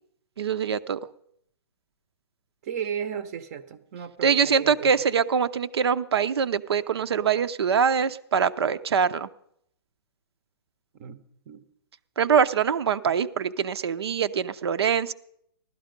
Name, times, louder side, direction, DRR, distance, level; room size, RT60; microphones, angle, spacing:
voice 1, 0.4-1.0 4.2-9.3 12.2-15.1, right 7 dB, 75° right, 13 dB, 0.7 m, -23 dB
voice 2, 2.6-5.0 10.9-11.2 11.5-11.6, right 8 dB, 35° right, 14 dB, 0.8 m, -34 dB
15.5 x 12.5 x 5.2 m, 0.71 s
hypercardioid pair, 155°, 13 cm